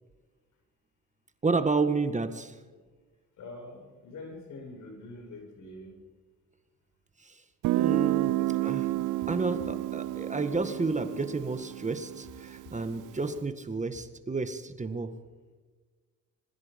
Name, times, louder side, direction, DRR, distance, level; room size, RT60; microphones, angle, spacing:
voice 1, 1.4-2.6 7.2-7.4 7.7-8.9 9.3-15.1, right 4 dB, 25° right, 8 dB, 1.8 m, -31 dB
voice 2, 3.4-5.9, left 2 dB, 75° left, 3 dB, 7.1 m, -44 dB
Guitar, 7.6-13.2, right 16 dB, 85° right, 0.6 m, -30 dB
26.0 x 21.5 x 5.3 m, 1.4 s
cardioid pair, 90°, 30 cm